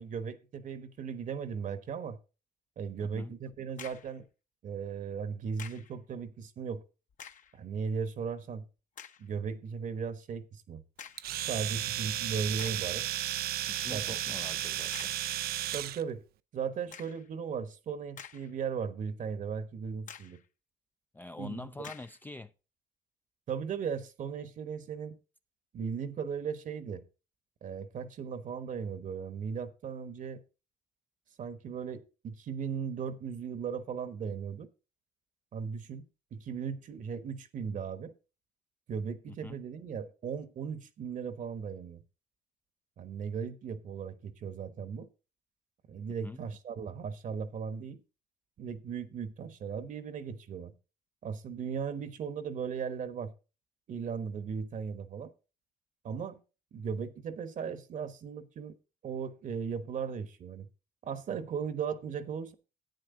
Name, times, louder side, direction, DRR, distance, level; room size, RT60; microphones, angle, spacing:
voice 1, 0.0-2.2 2.8-4.2 4.6-6.8 7.5-8.7 9.2-10.8 11.4-13.1 13.9-14.2 15.7-16.2 16.5-20.4 21.4-21.7 23.5-25.2 25.7-27.0 27.6-30.4 31.4-34.7 35.5-36.1 36.3-38.1 38.9-42.0 43.0-45.1 45.9-48.0 48.6-50.7 51.2-53.3 53.9-55.3 56.0-56.4 56.7-58.8 59.0-60.7 61.0-62.5, right 6 dB, 50° right, 1.2 m, -37 dB
voice 2, 3.0-3.3 13.7-15.1 21.1-22.5 39.3-39.6 46.2-46.4, left 2 dB, 10° left, 0.4 m, -44 dB
sound 1, 3.8-4.2 5.6-6.0 7.1-7.6 8.2-8.3 9.0-9.3 11.0-11.4 12.1-12.2 12.6-13.0 14.9-15.3 16.9-17.3 17.9-18.7 19.1-19.2 20.1-20.5 21.8-22.2, left 8 dB, 50° left, 0.9 m, -49 dB
Domestic sounds home sounds, 11.2-16.0, right 13 dB, 65° right, 0.5 m, -34 dB
10.5 x 8.9 x 3.8 m
cardioid pair, 110°, 17 cm